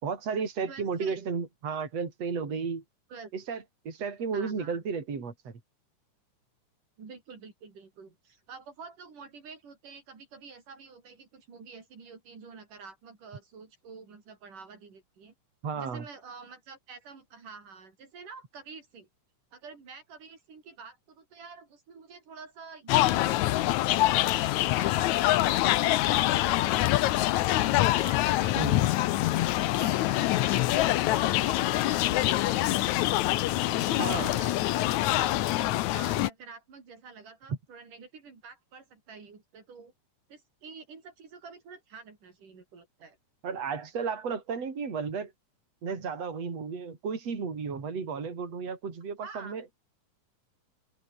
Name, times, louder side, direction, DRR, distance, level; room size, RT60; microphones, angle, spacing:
voice 1, 0.0-2.8 3.3-5.5 15.6-16.0 28.6-28.9 34.0-34.4 43.4-45.3 45.8-49.6, right 5 dB, 50° right, 5.1 m, -33 dB
voice 2, 0.7-1.3 3.1-3.3 4.3-4.8 7.0-15.3 15.7-19.1 19.5-26.9 27.3-33.0 33.6-39.9 40.3-43.2 49.2-49.6, right 5 dB, 80° right, 6.5 m, -48 dB
sound 1, 22.9-36.3, left 16 dB, 75° left, 2.1 m, -25 dB
open air
omnidirectional pair, 3.6 m